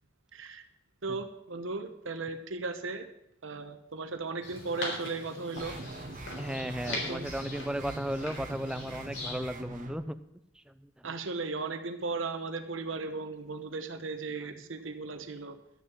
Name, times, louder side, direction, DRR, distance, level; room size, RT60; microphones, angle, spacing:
voice 1, 0.3-0.6 1.0-3.0 3.4-5.8 6.8-7.3 11.0-15.6, right 3 dB, 75° right, 7 dB, 1.1 m, -36 dB
sound 1, 4.4-9.4, left 2 dB, 65° left, 3.9 m, -40 dB
sound 2, 5.6-9.9, right 2 dB, 45° right, 1.1 m, -42 dB
voice 2, 6.4-10.1 10.6-11.1, equal, 5° right, 11 dB, 0.5 m, -35 dB
12.0 x 6.7 x 7.4 m, 0.81 s
head